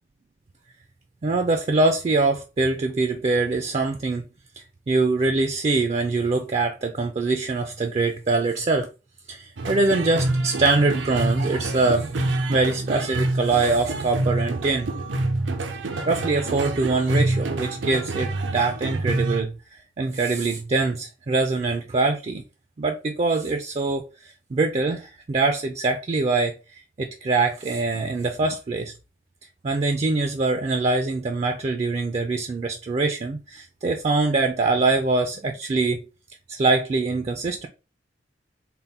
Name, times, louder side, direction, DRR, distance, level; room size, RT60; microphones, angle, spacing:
voice 1, 1.2-4.2 4.9-8.9 9.3-12.1 12.5-14.9 15.8-19.5 20.0-22.4 22.8-28.9 29.6-36.0 36.5-37.7, right 3 dB, 35° right, 0.3 m, -23 dB
sound 1, 9.6-19.4, right 2 dB, 85° right, 0.6 m, -27 dB
3.6 x 2.1 x 4.1 m
head